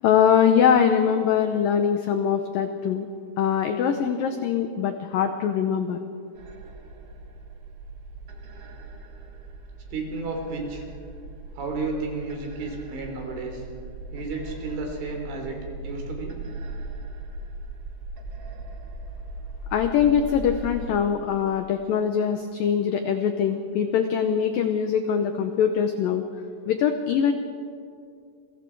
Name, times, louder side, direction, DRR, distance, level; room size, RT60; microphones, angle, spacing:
voice 1, 0.0-3.1 3.4-6.0 19.7-26.3 26.7-27.3, left 8 dB, 85° left, 7 dB, 2.0 m, -22 dB
sound 1, 6.3-20.8, right 2 dB, 55° right, 1.8 m, -39 dB
voice 2, 9.9-10.8 11.6-13.6 14.1-16.4, right 3 dB, 90° right, 1 dB, 6.1 m, -32 dB
29.0 x 22.5 x 4.7 m, 2.3 s
omnidirectional pair, 5.3 m